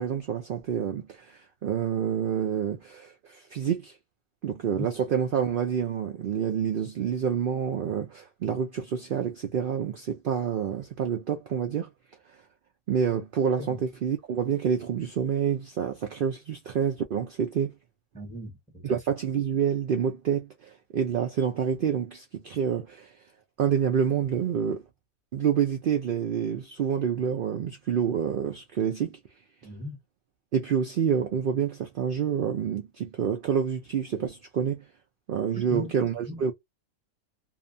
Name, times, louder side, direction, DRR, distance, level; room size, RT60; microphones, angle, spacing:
voice 1, 0.0-4.0 4.4-11.9 12.9-17.7 18.8-23.2 23.6-24.8 25.3-29.2 30.5-34.8 35.3-36.5, right 8 dB, 75° right, 0.5 m, -28 dB
voice 2, 18.1-19.0 29.6-30.0 35.5-36.4, equal, 5° left, 0.7 m, -38 dB
2.6 x 2.2 x 2.5 m
omnidirectional pair, 1.5 m